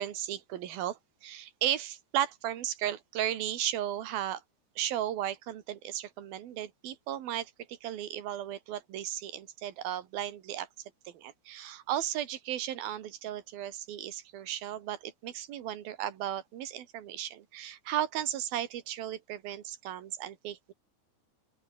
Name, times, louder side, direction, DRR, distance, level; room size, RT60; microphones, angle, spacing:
voice 1, 0.0-4.4 4.8-10.7 11.0-20.7, right 11 dB, 65° right, 3.4 m, -35 dB
open air
omnidirectional pair, 4.9 m